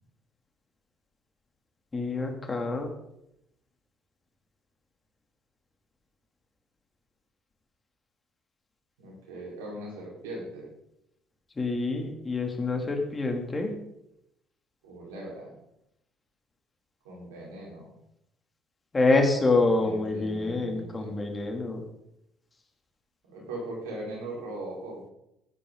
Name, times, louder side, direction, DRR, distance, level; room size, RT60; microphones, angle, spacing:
voice 1, 1.9-2.9 11.6-13.7 18.9-21.8, left 3 dB, 30° left, 3 dB, 3.2 m, -26 dB
voice 2, 9.0-10.7 14.8-15.5 17.0-17.9 19.6-21.1 23.2-25.1, right 1 dB, 85° right, -3 dB, 5.0 m, -40 dB
15.5 x 10.0 x 4.1 m, 0.81 s
hypercardioid pair, 55°, 0 cm